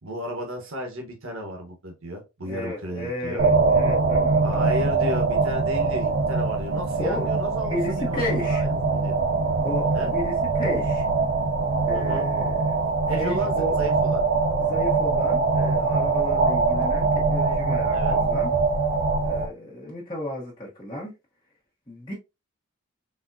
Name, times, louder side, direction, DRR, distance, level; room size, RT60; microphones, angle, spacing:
voice 1, 0.0-3.4 4.4-9.2 9.9-10.1 11.9-12.3 13.1-14.2 17.9-18.1, equal, 65° right, 1.2 m, -34 dB
voice 2, 2.4-4.9 7.0-7.3 7.6-8.6 9.6-11.1 11.9-12.8 13.1-13.7 14.6-18.5 19.2-21.1 21.9-22.1, left 1 dB, 20° left, 1.1 m, -33 dB
sound 1, 3.4-19.5, right 4 dB, 50° right, 0.7 m, -23 dB
4.2 x 3.4 x 2.6 m
head